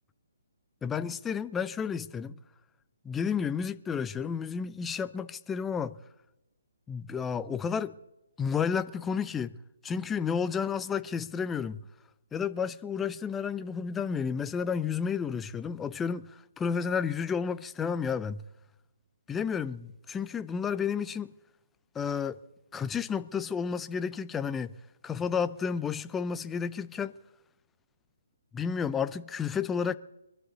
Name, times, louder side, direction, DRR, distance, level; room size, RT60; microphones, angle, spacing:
voice 1, 0.8-2.4 3.0-6.0 6.9-7.9 8.4-9.5 9.8-11.8 12.3-18.4 19.3-21.3 21.9-22.4 22.7-24.7 25.0-27.1 28.5-30.0, left 6 dB, 10° left, 0.5 m, -31 dB
23.5 x 12.0 x 4.0 m
hypercardioid pair, 150°, 0 cm